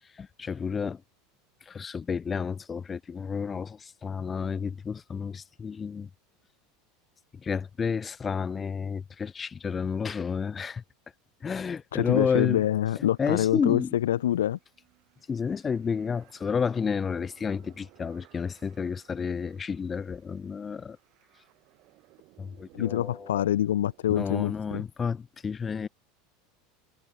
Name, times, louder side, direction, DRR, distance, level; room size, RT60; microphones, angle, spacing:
voice 1, 0.2-1.0 1.7-6.1 7.3-10.8 11.4-12.6 13.2-13.9 15.3-21.0 22.4-23.4 24.1-25.9, left 6 dB, 25° left, 1.2 m, -31 dB
voice 2, 11.9-14.6 22.7-24.8, left 12 dB, 85° left, 0.5 m, -26 dB
sound 1, 12.9-24.6, right 21 dB, 55° right, 7.7 m, -60 dB
hypercardioid pair, 95°, 0 cm